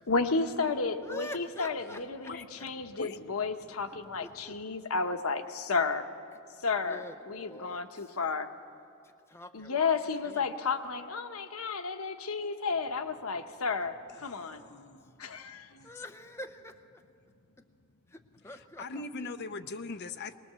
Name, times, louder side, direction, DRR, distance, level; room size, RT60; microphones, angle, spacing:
voice 1, 0.1-6.1 6.6-8.5 9.5-14.6 15.2-15.7, left 4 dB, 90° left, 8 dB, 1.0 m, -32 dB
voice 2, 1.0-2.3 3.9-4.6 6.3-6.4 6.8-8.2 9.0-10.5 13.7-13.9 14.3-14.8 15.8-17.0 18.1-19.3, left 1 dB, 10° left, 7 dB, 0.6 m, -47 dB
voice 3, 14.2-15.3 15.7-15.9 18.8-20.4, left 3 dB, 50° left, 8 dB, 0.7 m, -41 dB
21.5 x 19.0 x 6.8 m, 2.5 s
head